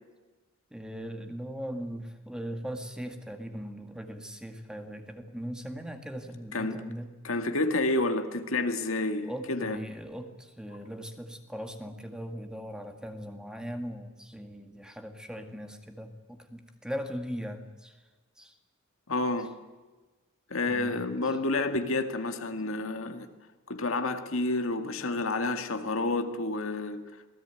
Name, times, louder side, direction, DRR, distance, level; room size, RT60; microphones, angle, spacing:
voice 1, 0.7-7.1 9.2-17.9 18.4-18.5 20.6-21.0, equal, 5° right, 2.0 m, -39 dB
voice 2, 7.2-9.8 19.1-19.5 20.5-23.3 23.7-27.0, left 2 dB, 65° left, 2.0 m, -29 dB
27.0 x 18.0 x 9.2 m
head